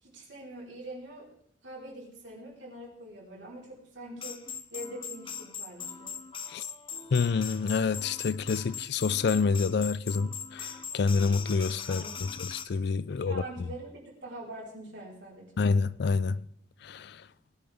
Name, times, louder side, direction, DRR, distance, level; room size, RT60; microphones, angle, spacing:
voice 1, 0.0-1.3 1.6-6.2 11.9-12.4 13.1-15.5, right 1 dB, 75° right, 4.3 m, -44 dB
sound 1, 4.2-12.7, left 6 dB, 30° left, 0.8 m, -40 dB
voice 2, 7.1-13.7 15.6-16.4 16.8-17.3, left 4 dB, 60° left, 0.4 m, -28 dB
19.5 x 10.0 x 3.6 m
head